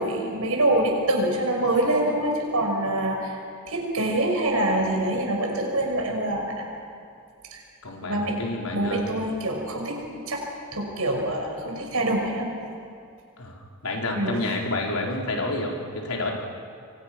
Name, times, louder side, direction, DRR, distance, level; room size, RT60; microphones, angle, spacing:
voice 1, 0.0-3.4 3.7-6.7 7.5-7.6 8.1-8.4 8.7-10.0 10.3-10.4 10.7-12.4 14.1-14.4, right 1 dB, 75° right, 1 dB, 5.8 m, -25 dB
voice 2, 7.8-9.0 13.4-16.3, left 2 dB, 85° left, -1 dB, 4.3 m, -29 dB
28.5 x 23.5 x 6.2 m, 2.4 s
head